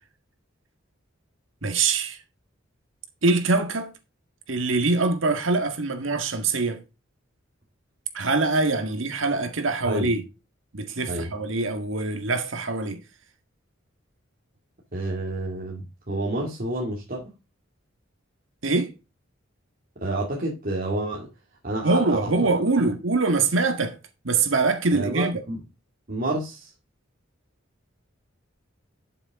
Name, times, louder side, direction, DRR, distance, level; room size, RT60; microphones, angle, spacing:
voice 1, 1.6-2.2 3.2-3.9 4.5-6.8 8.1-10.2 10.7-13.0 18.6-18.9 21.8-24.0 24.2-25.4, right 3 dB, 85° right, 1.8 m, -23 dB
voice 2, 14.9-17.2 20.0-21.3 21.6-22.5 22.8-22.9 24.9-25.6 26.1-26.7, right 2 dB, 45° right, 2.3 m, -29 dB
12.0 x 6.9 x 3.6 m
head